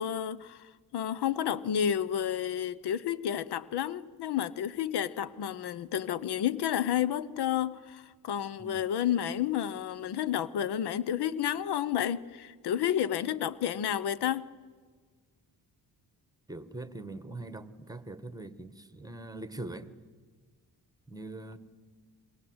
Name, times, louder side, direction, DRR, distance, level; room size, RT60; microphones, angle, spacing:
voice 1, 0.0-14.5, left 10 dB, 85° left, 18 dB, 0.9 m, -31 dB
voice 2, 16.5-19.9 21.1-21.6, right 2 dB, 10° right, 13 dB, 1.5 m, -42 dB
27.0 x 21.5 x 8.0 m, 1.5 s
cardioid pair, 80°, 38 cm